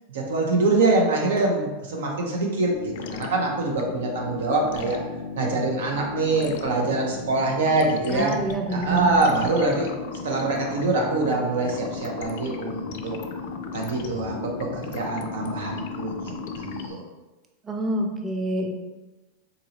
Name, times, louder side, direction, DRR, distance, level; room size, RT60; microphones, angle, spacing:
voice 1, 0.1-2.7 3.1-5.0 5.3-8.3 8.7-9.9 10.2-13.2 13.7-17.0, right 3 dB, 85° right, 0 dB, 0.7 m, -24 dB
sound 1, 2.7-16.9, left 5 dB, 65° left, 0.4 m, -35 dB
voice 2, 8.1-9.3 17.6-18.7, right 1 dB, 15° right, 3 dB, 0.4 m, -27 dB
4.0 x 2.6 x 2.9 m, 1.1 s
supercardioid pair, 145°, 0 cm